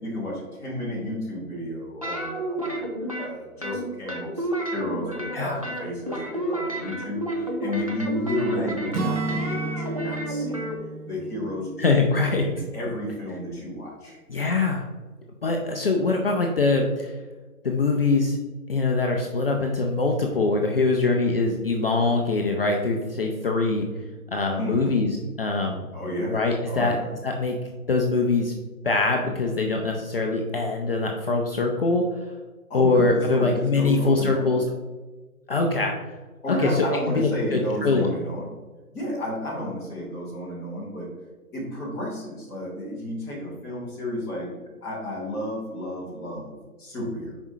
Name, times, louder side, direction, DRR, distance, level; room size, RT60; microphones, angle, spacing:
voice 1, 0.0-10.7 11.0-12.0 12.4-14.2 24.6-24.9 25.9-27.1 32.7-34.6 36.4-38.5 38.9-41.1 41.5-47.4, left 1 dB, 5° left, -7 dB, 0.9 m, -32 dB
sound 1, 2.0-3.3 3.6-5.4 5.6-10.8, right 1 dB, 25° right, 0.4 m, -30 dB
Acoustic guitar / Strum, 8.9-12.9, right 3 dB, 70° right, 1.2 m, -32 dB
voice 2, 11.8-12.5 14.3-14.8 15.4-17.2 17.6-18.4 18.7-23.9 24.3-25.1 25.4-25.9 26.3-26.9 27.2-27.6 27.9-28.5 28.8-32.0 32.7-34.6 35.5-35.9 36.5-36.9 37.1-38.0, left 3 dB, 40° left, 1 dB, 0.6 m, -23 dB
6.9 x 5.1 x 2.7 m, 1.3 s
figure-of-eight pair, 145°, 45 cm